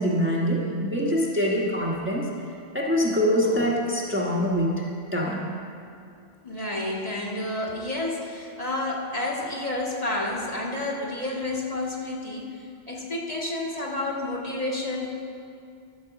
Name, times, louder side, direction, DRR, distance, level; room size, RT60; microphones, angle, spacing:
voice 1, 0.0-2.3 2.7-5.4, equal, 10° right, -4 dB, 1.1 m, -24 dB
voice 2, 6.4-12.6 12.9-15.1, left 2 dB, 35° left, -4 dB, 1.6 m, -30 dB
13.5 x 5.3 x 6.9 m, 2.4 s
omnidirectional pair, 1.1 m